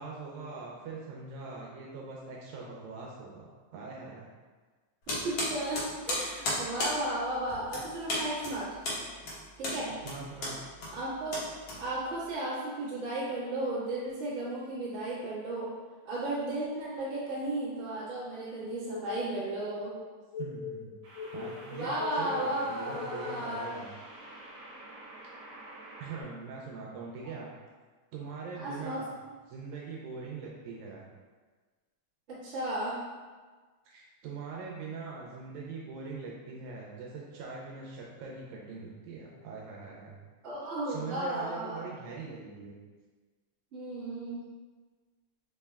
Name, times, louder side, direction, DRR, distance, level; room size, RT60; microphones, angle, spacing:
voice 1, 0.0-4.3 10.1-10.6 20.4-20.9 21.3-23.9 26.0-27.5 28.1-29.1 29.5-31.0 33.9-40.2 40.9-42.7, right 4 dB, 85° right, -3 dB, 1.9 m, -42 dB
sound 1, 5.1-12.3, left 1 dB, 60° left, 1.4 m, -35 dB
voice 2, 5.2-8.8 9.6-9.9 10.9-11.4 11.8-15.7 16.0-19.9 21.7-23.7 28.5-29.0 32.3-33.0 40.4-41.8 43.7-44.4, right 1 dB, 50° right, -10 dB, 0.8 m, -34 dB
sound 2, 17.2-17.4 21.0-26.2, right 2 dB, 65° right, 2.0 m, -49 dB
sound 3, 18.6-23.5, left 5 dB, 80° left, 1.1 m, -41 dB
5.0 x 2.1 x 3.4 m, 1.4 s
omnidirectional pair, 3.4 m